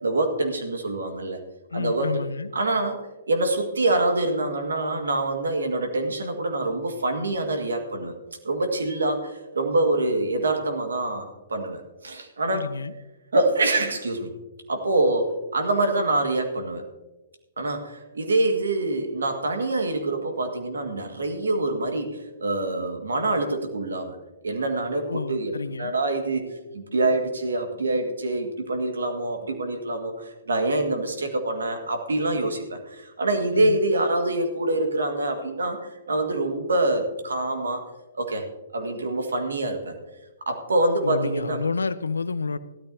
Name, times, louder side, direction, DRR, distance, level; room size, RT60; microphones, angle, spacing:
voice 1, 0.0-1.4 1.7-2.1 2.5-3.0 3.3-8.1 8.4-12.6 13.3-14.3 14.7-16.8 17.6-24.2 24.4-26.4 26.7-37.8 38.2-38.5 38.7-39.9 40.5-41.6, right 2 dB, 85° right, 5 dB, 1.8 m, -25 dB
voice 2, 1.7-2.5 12.5-12.9 25.1-25.9 33.5-33.8 41.0-42.6, left 4 dB, 90° left, 15 dB, 0.6 m, -29 dB
15.0 x 12.5 x 2.8 m, 1.1 s
hypercardioid pair, 125°, 0 cm